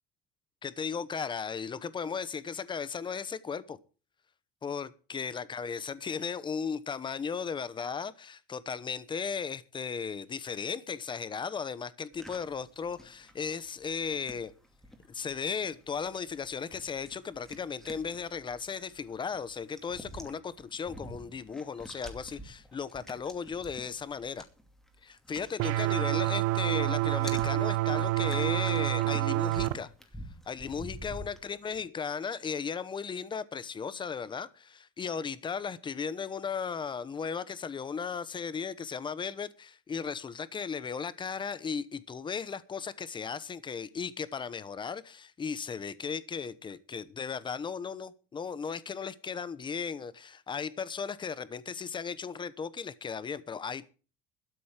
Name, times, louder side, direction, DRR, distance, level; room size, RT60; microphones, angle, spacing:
voice 1, 0.6-3.8 4.6-14.5 15.1-24.5 25.0-29.9 30.5-53.9, left 6 dB, 25° left, 0.9 m, -36 dB
sound 1, 12.1-26.4 26.6-31.8, equal, ahead, 2.6 m, -49 dB
sound 2, 25.6-29.7, right 18 dB, 80° right, 1.0 m, -28 dB
13.0 x 8.3 x 7.3 m
cardioid pair, 145°, 21 cm